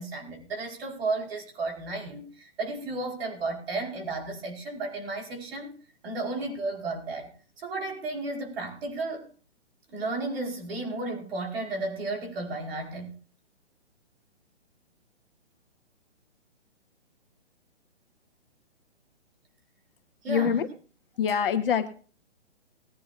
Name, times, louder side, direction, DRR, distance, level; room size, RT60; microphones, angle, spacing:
voice 1, 0.0-5.7 6.0-7.3 7.6-9.3 9.9-13.1 20.2-20.5, right 2 dB, 55° right, 4.9 m, -33 dB
voice 2, 20.3-20.7 21.2-21.9, left 7 dB, 50° left, 1.5 m, -25 dB
20.5 x 10.5 x 2.6 m
hypercardioid pair, 140°, 35 cm